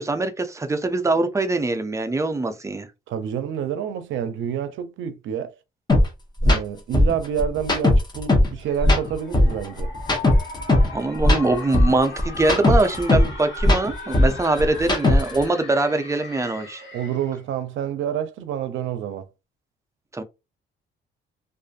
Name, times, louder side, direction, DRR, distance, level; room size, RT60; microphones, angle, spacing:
voice 1, 0.0-2.9 10.9-16.8 20.1-20.2, right 2 dB, 15° right, 0.5 m, -23 dB
voice 2, 3.1-5.5 6.4-9.9 16.9-19.3, right 9 dB, 75° right, 0.5 m, -28 dB
sound 1, 5.9-6.0 6.4-6.6 6.9-8.5 8.8-10.9 11.2-13.3 13.6-15.4, left 1 dB, 20° left, 0.8 m, -18 dB
sound 2, 8.6-17.4, left 4 dB, 70° left, 1.1 m, -38 dB
2.5 x 2.5 x 2.4 m
cardioid pair, 90°, 20 cm